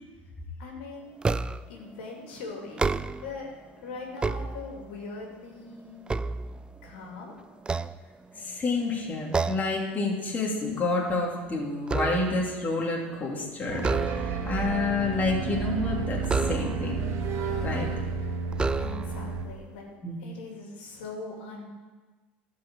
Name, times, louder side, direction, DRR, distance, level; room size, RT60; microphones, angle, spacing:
voice 1, 0.6-1.1 1.7-2.9 3.2-3.5 3.8-6.1 6.8-7.3 18.8-19.9 20.2-21.7, left 4 dB, 75° left, -1 dB, 2.5 m, -41 dB
sound 1, 1.2-1.8 2.6-3.4 4.0-5.1 5.6-7.1 7.6-8.6 9.3-9.8 10.2-10.5 10.8-12.5 13.8-14.6 16.2-17.0 17.8-17.9 18.5-19.3, right 3 dB, 15° right, 0.4 m, -30 dB
voice 2, 8.4-17.1 17.6-17.9 20.0-20.2, left 3 dB, 30° left, -1 dB, 2.5 m, -29 dB
sound 2, 13.7-19.4, right 5 dB, 50° right, 1.8 m, -31 dB
12.0 x 5.0 x 7.4 m, 1.3 s
hypercardioid pair, 80°, 6 cm